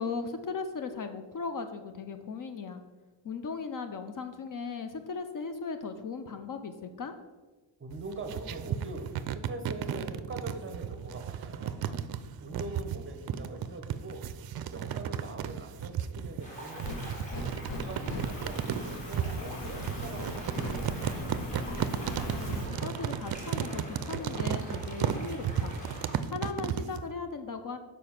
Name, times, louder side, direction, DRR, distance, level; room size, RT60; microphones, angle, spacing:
voice 1, 0.0-2.8 3.2-7.1 17.7-18.2 21.9-25.7 26.3-27.8, left 4 dB, 45° left, 8 dB, 0.6 m, -38 dB
voice 2, 7.8-11.9 12.4-14.3 14.7-17.1 17.7-21.1, right 2 dB, 25° right, 6 dB, 0.8 m, -43 dB
sound 1, 7.9-27.0, right 9 dB, 55° right, 0.5 m, -34 dB
sound 2, 16.4-26.2, equal, 15° left, 2.0 m, -45 dB
Fire, 16.5-22.7, left 1 dB, 65° left, 1.6 m, -39 dB
6.7 x 5.1 x 5.7 m, 1.3 s
wide cardioid pair, 150°, 45 cm